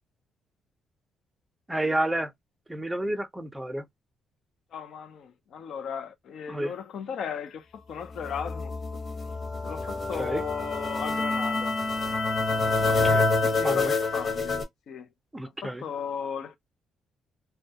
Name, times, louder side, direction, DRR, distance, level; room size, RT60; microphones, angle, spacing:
voice 1, 1.7-2.3 2.7-3.9 6.5-6.7 10.1-10.4 12.8-13.9 15.3-15.9, right 1 dB, 10° right, 0.6 m, -31 dB
voice 2, 4.7-8.7 9.6-11.8 13.5-14.6 14.9-15.1 15.6-16.6, left 7 dB, 70° left, 0.6 m, -36 dB
sound 1, 8.1-14.6, left 3 dB, 40° left, 1.0 m, -27 dB
2.2 x 2.2 x 2.8 m
cardioid pair, 90°, 0 cm